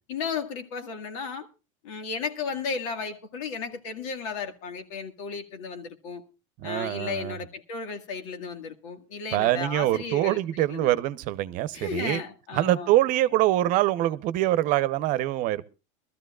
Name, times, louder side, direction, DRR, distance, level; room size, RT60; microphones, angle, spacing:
voice 1, 0.1-1.5 1.8-6.2 6.6-10.9 11.7-12.9, left 5 dB, 75° left, 2.1 m, -34 dB
voice 2, 6.6-7.4 9.3-12.2 12.5-15.6, right 15 dB, 50° right, 0.9 m, -24 dB
22.0 x 13.5 x 2.4 m
supercardioid pair, 130°, 17 cm